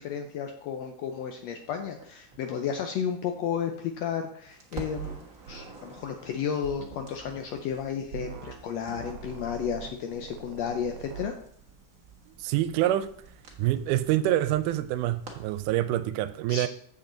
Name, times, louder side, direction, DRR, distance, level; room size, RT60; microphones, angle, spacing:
voice 1, 0.0-11.3 16.5-16.7, left 7 dB, 75° left, 5 dB, 1.6 m, -33 dB
Crackle, 2.0-4.1 4.5-15.8, right 5 dB, 45° right, 1.1 m, -50 dB
sound 1, 5.0-5.2 5.5-5.7 6.7-7.5 8.1-8.6 8.9-11.3, right 7 dB, 70° right, 2.0 m, -42 dB
voice 2, 12.4-13.1 13.6-16.7, right 13 dB, 85° right, 13 dB, 2.1 m, -26 dB
7.7 x 7.0 x 3.8 m, 0.64 s
omnidirectional pair, 3.6 m